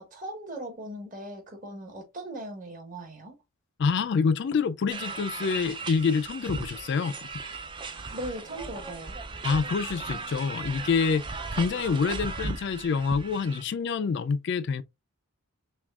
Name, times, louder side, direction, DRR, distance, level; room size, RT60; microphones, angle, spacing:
voice 1, 0.0-3.4 8.1-9.2, right 1 dB, 40° right, 1.5 m, -39 dB
voice 2, 3.8-7.1 9.4-14.8, left 5 dB, 50° left, 0.3 m, -27 dB
sound 1, 4.9-13.6, right 4 dB, 20° right, 0.4 m, -37 dB
5.9 x 2.3 x 2.3 m
head